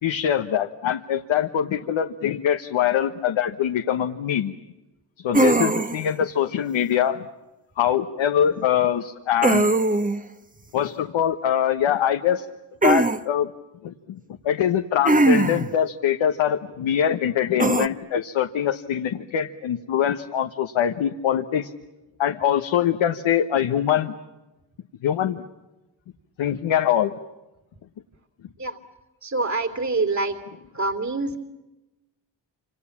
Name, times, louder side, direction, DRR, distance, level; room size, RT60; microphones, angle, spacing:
voice 1, 0.0-4.5 5.2-7.3 7.8-9.7 10.7-12.4 12.8-13.5 13.8-14.2 14.4-21.7 22.2-24.1 25.0-25.4 26.4-27.1, left 9 dB, 80° left, 6 dB, 1.3 m, -23 dB
sound 1, 5.3-6.1 9.4-10.2 12.8-13.2 15.1-15.7 17.6-17.9, right 2 dB, 20° right, 1.2 m, -20 dB
voice 2, 29.2-30.4 30.7-31.4, right 3 dB, 35° right, 8 dB, 3.1 m, -25 dB
28.0 x 27.5 x 7.3 m, 1.0 s
cardioid pair, 60°, 46 cm